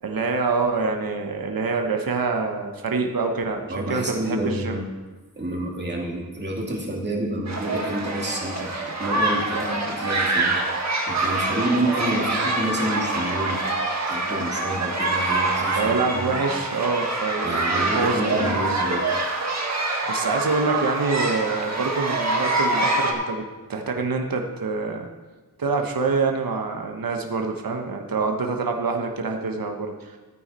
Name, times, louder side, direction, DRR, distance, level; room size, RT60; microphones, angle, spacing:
voice 1, 0.0-4.8 15.8-18.8 20.1-23.4 23.7-25.1 25.6-30.2, right 4 dB, 60° right, 3 dB, 1.2 m, -26 dB
voice 2, 3.7-4.8 5.4-10.6 11.1-13.6 14.0-16.4 17.4-19.0, right 1 dB, 25° right, -2 dB, 2.6 m, -28 dB
sound 1, 7.5-23.1, right 2 dB, 45° right, 1.8 m, -25 dB
14.0 x 9.3 x 4.3 m, 1.2 s
wide cardioid pair, 95°, 39 cm